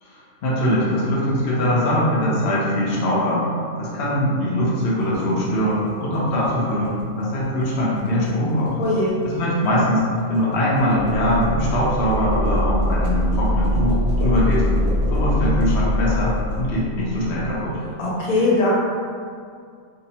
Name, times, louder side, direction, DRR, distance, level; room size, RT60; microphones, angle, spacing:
voice 1, 0.0-3.5 3.8-8.7 9.2-14.7 15.1-17.8, equal, 60° left, -6 dB, 0.7 m, -22 dB
sound 1, 5.0-16.6, right 1 dB, 55° right, 0.7 m, -35 dB
voice 2, 8.8-9.2 18.0-18.7, left 2 dB, 75° left, -6 dB, 1.1 m, -20 dB
sound 2, 11.1-17.6, left 1 dB, 15° left, 0.9 m, -23 dB
2.6 x 2.0 x 2.8 m, 2.2 s
omnidirectional pair, 1.5 m